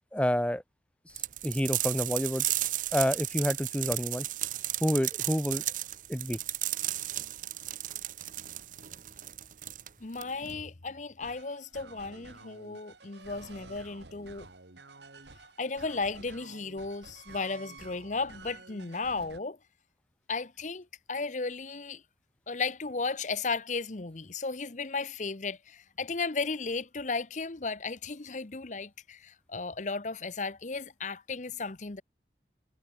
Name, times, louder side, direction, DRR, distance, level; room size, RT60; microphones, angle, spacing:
voice 1, 0.1-0.6 1.4-2.5 2.9-4.3 4.8-5.6 6.1-6.4, equal, 5° left, 1.1 m, -28 dB
sound 1, 1.2-10.6, right 14 dB, 45° right, 0.9 m, -34 dB
voice 2, 10.0-14.5 15.6-19.6 20.3-22.0 22.5-32.0, left 4 dB, 45° left, 0.9 m, -35 dB
sound 2, 11.2-19.4, right 3 dB, 75° right, 2.5 m, -51 dB
head